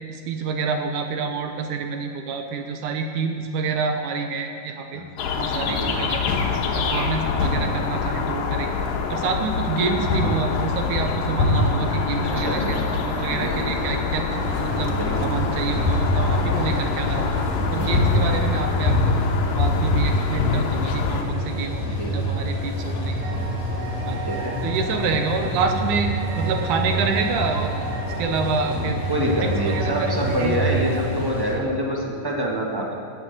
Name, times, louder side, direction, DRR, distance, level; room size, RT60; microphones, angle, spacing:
voice 1, 0.1-5.0 5.3-6.2 6.7-8.8 9.1-12.8 13.2-14.3 14.6-14.9 15.2-17.3 17.7-19.2 19.5-23.4 24.1-24.3 24.6-26.1 26.4-27.9 28.2-29.0 29.4-30.8, right 5 dB, 70° right, 5 dB, 2.3 m, -27 dB
sound 1, 5.2-21.2, left 4 dB, 90° left, 2.8 m, -24 dB
sound 2, 11.8-31.1, right 4 dB, 85° right, 3.4 m, -36 dB
voice 2, 12.4-12.7 13.3-13.6 14.9-15.5 17.7-17.9 21.9-22.1 24.3-24.6 28.7-32.9, right 1 dB, 20° right, -2 dB, 0.6 m, -26 dB
sound 3, 14.4-31.6, equal, 65° left, 3.7 m, -28 dB
16.0 x 7.8 x 8.1 m, 2.6 s
omnidirectional pair, 3.9 m